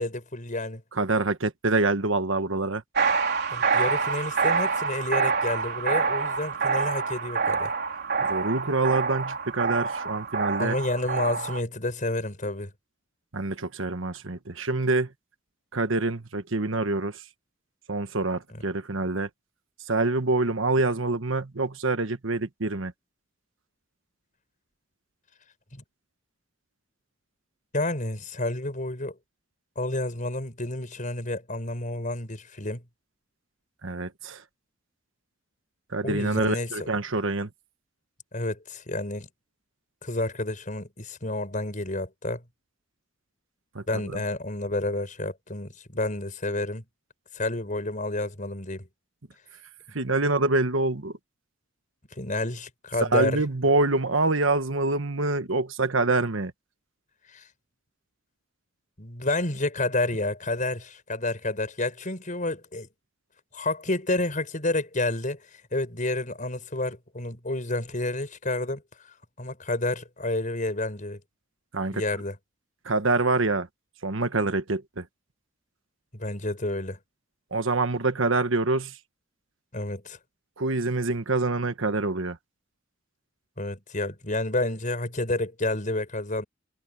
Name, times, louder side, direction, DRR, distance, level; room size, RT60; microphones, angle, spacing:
voice 1, 0.0-0.8 3.5-7.7 10.6-12.7 18.5-18.6 25.7-25.8 27.7-29.2 29.8-32.8 36.0-36.7 38.3-39.3 40.0-42.4 43.9-46.8 47.3-48.9 52.2-53.4 57.3-57.5 59.0-62.9 63.5-65.4 65.7-68.8 69.1-71.2 71.9-72.4 76.1-77.0 79.7-80.2 83.6-86.4, left 2 dB, 40° left, 6.1 m, -30 dB
voice 2, 0.9-2.8 8.2-10.7 13.3-15.1 15.7-17.2 17.9-19.3 19.9-22.9 33.8-34.4 35.9-37.5 43.7-44.2 49.9-51.2 53.0-56.5 71.7-72.0 72.8-73.7 74.0-75.1 77.5-79.0 80.6-82.4, right 3 dB, 70° right, 1.4 m, -26 dB
sound 1, 3.0-11.6, right 5 dB, 55° right, 3.8 m, -26 dB
head